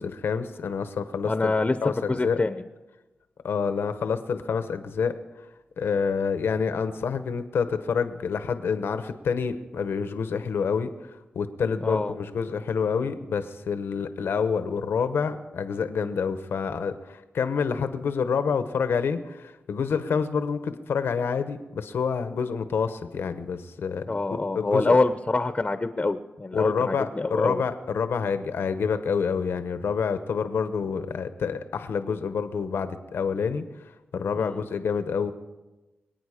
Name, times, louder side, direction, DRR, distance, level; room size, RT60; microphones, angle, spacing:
voice 1, 0.0-1.5 1.8-2.4 3.4-5.1 5.8-10.9 11.4-25.0 26.5-33.6 34.1-35.3, left 6 dB, 90° left, 10 dB, 0.9 m, -27 dB
voice 2, 1.2-1.8 2.1-2.6 11.8-12.1 24.1-27.6 34.4-34.6, left 3 dB, 30° left, 10 dB, 0.7 m, -25 dB
25.0 x 9.1 x 5.0 m, 1.1 s
cardioid pair, 70°, 4 cm